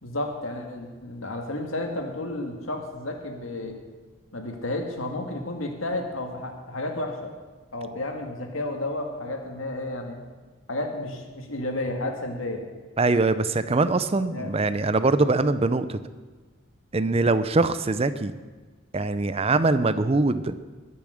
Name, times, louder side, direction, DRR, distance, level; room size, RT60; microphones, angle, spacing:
voice 1, 0.0-3.8 4.3-7.3 7.7-10.2 10.7-12.6 14.3-14.5, left 2 dB, 85° left, 3 dB, 2.0 m, -32 dB
voice 2, 13.0-16.0 16.9-18.3 18.9-20.6, right 3 dB, 30° right, 12 dB, 0.6 m, -23 dB
20.5 x 7.0 x 6.5 m, 1.3 s
head